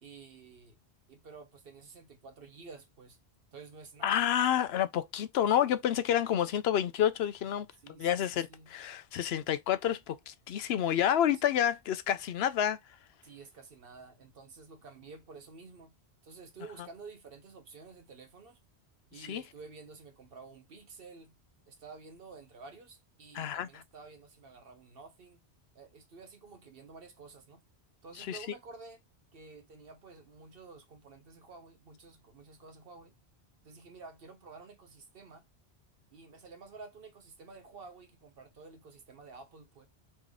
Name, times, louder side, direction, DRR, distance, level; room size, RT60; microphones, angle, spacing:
voice 1, 0.0-0.7 1.1-3.2 3.5-4.2 7.8-8.7 13.2-15.9 16.2-18.6 19.1-21.4 21.7-25.4 25.7-27.6 28.0-29.0 29.3-33.1 33.6-35.4 36.1-39.9, right 4 dB, 60° right, 1.2 m, -51 dB
voice 2, 4.0-7.7 8.0-12.8 19.2-19.4 23.3-23.7 28.2-28.4, left 10 dB, 75° left, 0.8 m, -29 dB
3.5 x 3.1 x 3.5 m
omnidirectional pair, 1.1 m